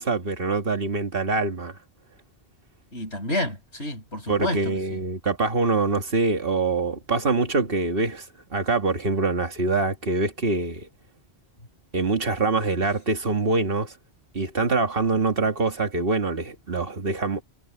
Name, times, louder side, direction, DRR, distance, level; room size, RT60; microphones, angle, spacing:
voice 1, 0.0-1.8 4.3-10.9 11.9-13.9 14.3-17.4, right 3 dB, 60° right, 2.0 m, -24 dB
voice 2, 2.9-5.0, left 1 dB, 80° left, 8.3 m, -29 dB
omnidirectional pair, 1.1 m